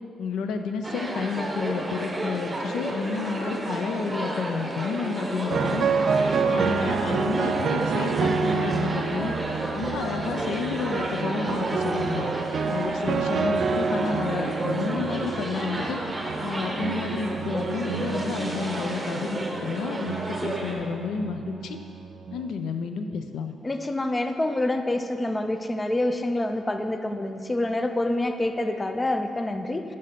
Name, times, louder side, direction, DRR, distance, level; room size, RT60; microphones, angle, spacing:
voice 1, 0.2-5.9 6.4-9.3 9.7-12.3 12.7-16.0 16.4-21.8 22.3-23.5, left 5 dB, 85° left, 7 dB, 0.4 m, -31 dB
sound 1, 0.8-20.8, right 1 dB, 15° right, 0.8 m, -32 dB
sound 2, 5.5-22.5, right 5 dB, 60° right, 0.3 m, -29 dB
voice 2, 23.6-29.8, left 1 dB, 20° left, 7 dB, 0.4 m, -27 dB
5.2 x 5.1 x 5.7 m, 2.5 s
cardioid pair, 105°, 0 cm